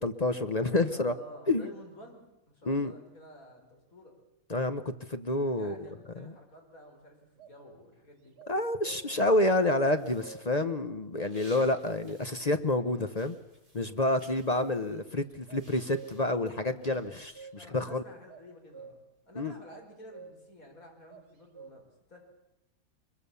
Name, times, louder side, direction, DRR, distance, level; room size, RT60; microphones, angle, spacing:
voice 1, 0.0-1.1 1.5-1.7 2.7-2.9 4.5-5.9 6.2-6.3 8.5-13.4 13.7-17.5 17.7-18.0 19.4-19.5, left 2 dB, 35° left, 9 dB, 0.7 m, -28 dB
voice 2, 0.7-4.2 5.6-8.4 17.5-22.2, equal, 55° left, 1 dB, 5.2 m, -52 dB
sound 1, 7.4-7.6 8.4-9.3 9.8-10.7 11.2-12.1 14.1-15.0 15.3-16.4 16.9-17.8 18.3-19.2 19.7-20.6 21.1-21.7, right 5 dB, 75° right, 2.4 m, -50 dB
sound 2, 10.0-12.8 13.1-17.4, right 1 dB, 20° right, 5.4 m, -58 dB
23.5 x 22.0 x 7.0 m, 0.93 s
omnidirectional pair, 1.7 m